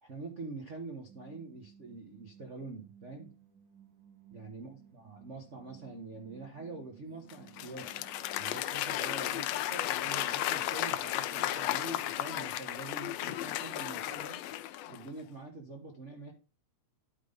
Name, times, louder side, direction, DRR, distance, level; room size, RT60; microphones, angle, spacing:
voice 1, 0.0-3.3 4.3-8.0 8.4-14.4 14.9-16.3, right 3 dB, 80° right, 2 dB, 0.6 m, -45 dB
sound 1, 1.1-12.9, right 9 dB, 50° right, 1.8 m, -57 dB
Applause / Crowd, 7.3-15.1, left 14 dB, 80° left, 1.5 m, -34 dB
11.0 x 3.9 x 5.2 m, 0.34 s
omnidirectional pair, 3.4 m